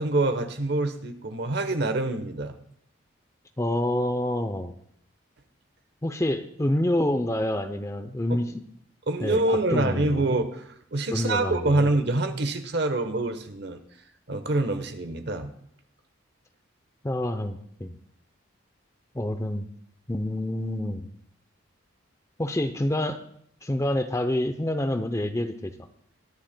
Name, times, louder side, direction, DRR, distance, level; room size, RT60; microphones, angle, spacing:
voice 1, 0.0-2.6 9.1-13.8 14.3-15.5, right 2 dB, 55° right, 8 dB, 1.0 m, -26 dB
voice 2, 3.6-4.7 6.0-8.6 9.2-10.3 11.1-11.9 17.0-18.0 19.1-19.7 20.1-21.1 22.4-23.2 23.6-25.7, left 1 dB, 15° left, 8 dB, 0.5 m, -27 dB
22.0 x 10.5 x 2.2 m, 0.68 s
head